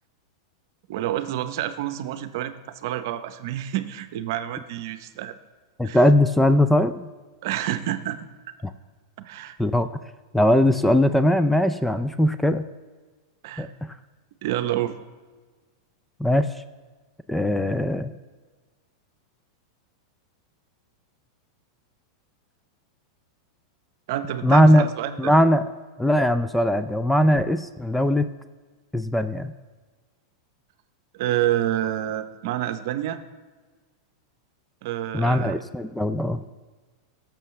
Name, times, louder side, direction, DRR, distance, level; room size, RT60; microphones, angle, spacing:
voice 1, 0.9-2.6 2.8-5.3 5.8-6.0 7.4-8.3 9.2-9.6 13.4-13.7 14.4-15.0 24.1-25.3 31.1-33.2 34.8-35.6, right 12 dB, 65° right, 10 dB, 0.7 m, -28 dB
voice 2, 5.8-7.1 8.6-8.7 9.6-9.9 10.3-12.7 13.6-14.0 16.2-16.5 17.3-18.1 24.4-24.9 25.2-25.7 26.0-28.3 28.9-29.5 35.1-36.4, left 1 dB, 5° left, 12 dB, 0.4 m, -20 dB
16.5 x 7.0 x 3.2 m, 1.4 s
hypercardioid pair, 125°, 2 cm